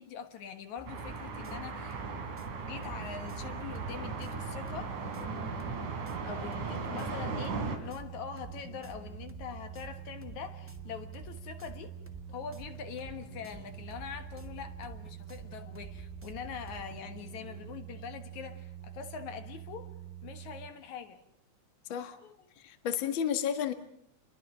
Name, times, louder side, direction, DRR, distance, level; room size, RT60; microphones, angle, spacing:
voice 1, 0.0-2.0 2.7-5.0 6.3-12.0 12.3-19.9 20.2-21.2 22.2-22.5, left 7 dB, 70° left, 2.8 m, -43 dB
sound 1, 0.8-17.0, equal, 5° right, 0.9 m, -50 dB
sound 2, 0.9-7.8, right 4 dB, 80° right, 4.3 m, -38 dB
sound 3, 1.8-20.7, right 11 dB, 45° right, 3.0 m, -46 dB
voice 2, 21.9-22.2 22.6-23.7, left 8 dB, 45° left, 2.1 m, -32 dB
30.0 x 22.0 x 6.2 m
omnidirectional pair, 3.5 m